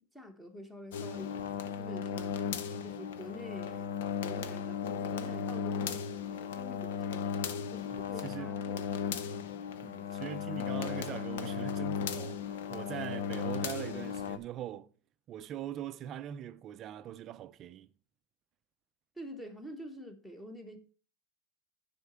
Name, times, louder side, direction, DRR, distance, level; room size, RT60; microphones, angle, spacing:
voice 1, 0.1-3.9 4.2-4.8 5.1-6.0 6.3-9.4 19.1-20.8, equal, 5° left, 1.2 m, -47 dB
sound 1, 0.9-14.4, left 7 dB, 85° left, 1.0 m, -36 dB
voice 2, 7.9-8.5 9.8-14.9 15.3-17.9, right 11 dB, 30° right, 0.5 m, -42 dB
8.1 x 5.8 x 6.3 m
supercardioid pair, 165°, 0 cm